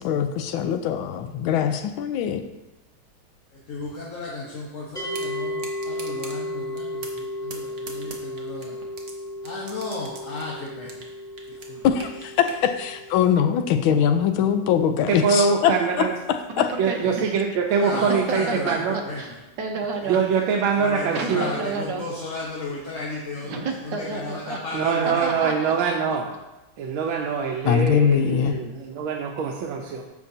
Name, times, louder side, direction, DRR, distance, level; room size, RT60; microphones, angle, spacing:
voice 1, 0.0-2.4 11.8-15.7 16.6-16.7 27.6-28.6, left 8 dB, 80° left, 8 dB, 1.4 m, -22 dB
voice 2, 3.7-8.8 9.4-10.9 11.7-11.8 17.8-18.7 19.1-19.2 20.8-23.5 24.2-25.3, left 3 dB, 45° left, -4 dB, 1.2 m, -33 dB
sound 1, 5.0-16.1, left 1 dB, ahead, 2.6 m, -35 dB
sound 2, 5.1-5.3 5.6-6.4 6.8-7.2 7.5-9.1 9.4-11.1 11.4-12.6, right 4 dB, 45° right, 1.1 m, -40 dB
voice 3, 15.1-16.1 16.8-19.0 20.1-21.5 24.7-26.3 26.8-30.0, right 6 dB, 85° right, 1 dB, 1.5 m, -24 dB
voice 4, 16.5-17.3 17.9-20.2 21.1-22.1 23.4-24.6 25.1-25.7, right 4 dB, 65° right, 2 dB, 1.5 m, -31 dB
13.5 x 5.1 x 2.7 m, 1.0 s
omnidirectional pair, 2.2 m